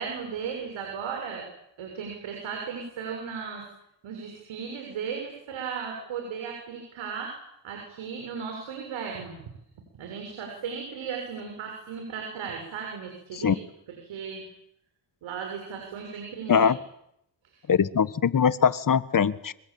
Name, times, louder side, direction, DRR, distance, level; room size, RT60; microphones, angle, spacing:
voice 1, 0.0-1.4 1.8-3.7 4.0-7.3 7.6-9.4 9.9-13.6 13.9-14.5 15.2-16.7, right 6 dB, 85° right, 2 dB, 7.0 m, -36 dB
voice 2, 17.7-19.5, left 7 dB, 45° left, 15 dB, 1.6 m, -22 dB
28.0 x 24.5 x 8.8 m, 0.77 s
cardioid pair, 80°, 45 cm